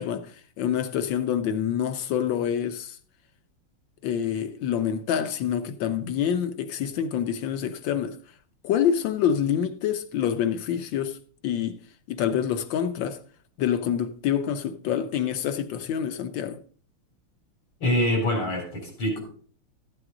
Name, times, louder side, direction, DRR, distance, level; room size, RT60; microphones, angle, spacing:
voice 1, 0.0-3.0 4.0-8.2 8.6-11.2 11.4-11.8 12.1-13.2 13.6-16.6, left 9 dB, 70° left, 1.4 m, -26 dB
voice 2, 17.8-19.2, left 1 dB, 90° left, 4.6 m, -25 dB
13.0 x 7.8 x 3.7 m
omnidirectional pair, 2.4 m